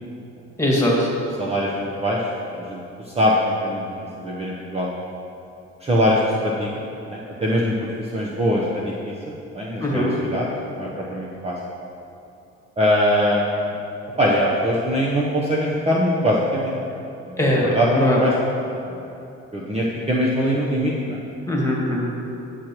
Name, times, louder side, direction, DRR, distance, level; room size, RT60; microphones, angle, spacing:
voice 1, 0.6-1.1 9.8-10.1 17.4-18.2 21.5-22.1, left 1 dB, 10° left, -4 dB, 1.9 m, -20 dB
voice 2, 1.4-2.8 3.2-3.8 4.2-4.9 5.8-6.7 7.1-9.1 9.5-10.5 10.8-11.5 12.8-13.7 14.2-17.0 17.3-18.3 18.9-19.1 19.5-21.2, equal, 20° right, -5 dB, 0.8 m, -22 dB
10.0 x 6.5 x 3.0 m, 2.7 s
cardioid pair, 90°, 30 cm